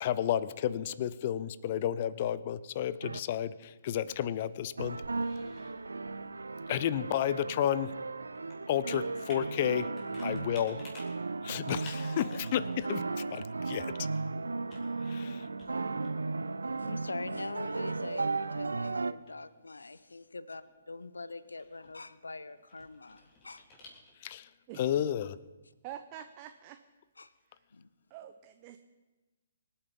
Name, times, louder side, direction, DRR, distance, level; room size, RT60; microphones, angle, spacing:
voice 1, 0.0-5.0 6.7-7.9 8.7-9.9 10.2-10.8 11.4-13.9 15.1-15.5 24.2-24.5 24.8-25.4, left 10 dB, 40° left, 17 dB, 0.6 m, -32 dB
sound 1, 3.0-3.2 4.8-19.1, right 3 dB, 75° right, 0.5 m, -35 dB
Computer keyboard, 6.3-24.4, left 2 dB, 25° left, 3.8 m, -57 dB
voice 2, 16.8-23.6 27.2-27.3 27.7-27.9, left 3 dB, 75° left, 15 dB, 0.7 m, -43 dB
voice 3, 25.8-26.8 28.1-28.8, right 11 dB, 30° right, 8 dB, 0.7 m, -46 dB
25.0 x 8.7 x 5.3 m, 1.2 s
figure-of-eight pair, 130°, 0 cm